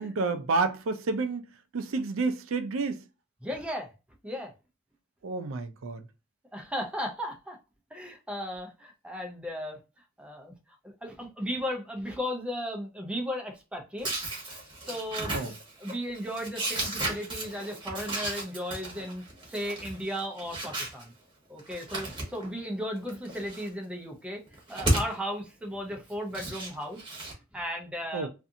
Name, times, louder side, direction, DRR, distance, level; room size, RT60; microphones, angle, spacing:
voice 1, 0.0-1.4 1.7-3.0 5.2-6.1 15.3-15.5 28.1-28.3, right 3 dB, 85° right, 0.4 m, -29 dB
voice 2, 3.4-3.9 4.2-4.5 6.5-7.6 7.9-9.8 10.2-10.5 10.8-14.3 14.8-15.5 15.8-21.1 21.5-27.1 27.5-28.3, equal, 5° right, 0.5 m, -35 dB
sound 1, 14.0-21.0 21.6-22.6 23.0-23.7 24.5-25.1 26.1-27.3, right 1 dB, 25° right, 1.0 m, -34 dB
2.6 x 2.4 x 2.6 m
head